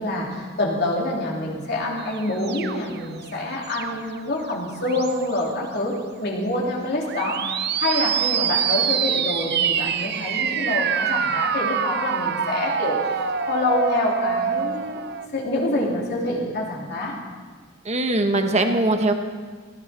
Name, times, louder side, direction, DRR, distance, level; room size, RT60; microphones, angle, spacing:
voice 1, 0.0-13.0 13.5-15.0 15.3-17.2, left 2 dB, 50° left, -3 dB, 3.1 m, -26 dB
sound 1, 2.0-4.2 4.7-5.4 7.0-15.3, right 7 dB, 50° right, 0.7 m, -25 dB
voice 2, 17.8-19.1, right 2 dB, 30° right, 6 dB, 1.2 m, -21 dB
18.0 x 14.5 x 4.4 m, 1.6 s
head